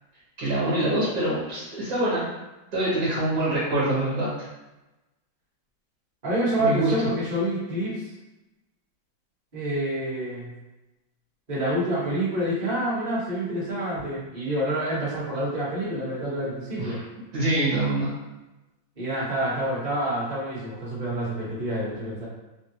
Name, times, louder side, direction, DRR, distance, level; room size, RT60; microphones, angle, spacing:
voice 1, 0.4-2.3 2.7-4.3 6.6-7.1 16.8-17.0 17.3-18.1, right 1 dB, 55° right, -9 dB, 1.3 m, -25 dB
voice 2, 6.2-8.0 9.5-10.5 11.5-17.0 19.0-22.2, right 1 dB, 30° right, -8 dB, 0.8 m, -27 dB
3.6 x 2.2 x 2.7 m, 1.0 s
omnidirectional pair, 2.2 m